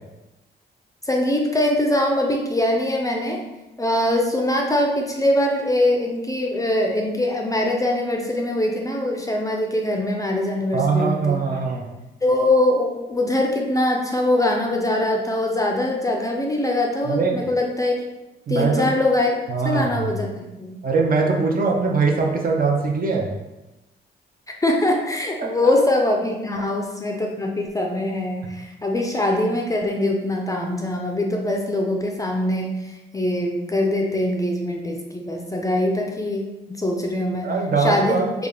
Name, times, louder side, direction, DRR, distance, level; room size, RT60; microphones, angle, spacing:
voice 1, 1.0-3.4 3.8-11.4 12.2-17.9 18.5-19.4 19.6-20.8 24.5-37.5 37.8-38.2, left 1 dB, 20° left, 1 dB, 0.4 m, -22 dB
voice 2, 10.7-11.9 17.0-17.4 18.5-18.8 19.5-20.2 20.8-23.3 25.4-25.5 37.4-38.3, right 4 dB, 50° right, 1 dB, 0.6 m, -21 dB
3.4 x 2.4 x 3.6 m, 1.0 s
wide cardioid pair, 125°, 19 cm